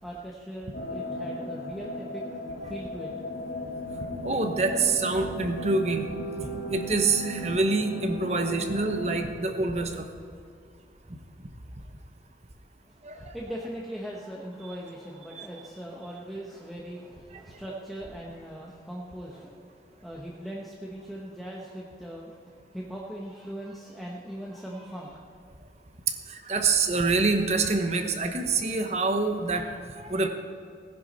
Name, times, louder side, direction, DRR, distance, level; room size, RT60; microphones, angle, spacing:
voice 1, 0.0-3.1 13.2-25.2, equal, ahead, -4 dB, 1.1 m, -40 dB
sound 1, 0.7-9.2, equal, 75° left, 3.8 m, -36 dB
voice 2, 4.2-6.1 6.7-10.1 13.0-13.4 15.3-15.5 17.7-17.8 26.3-30.3, right 3 dB, 40° right, 5 dB, 1.1 m, -26 dB
18.0 x 10.5 x 4.2 m, 2.3 s
head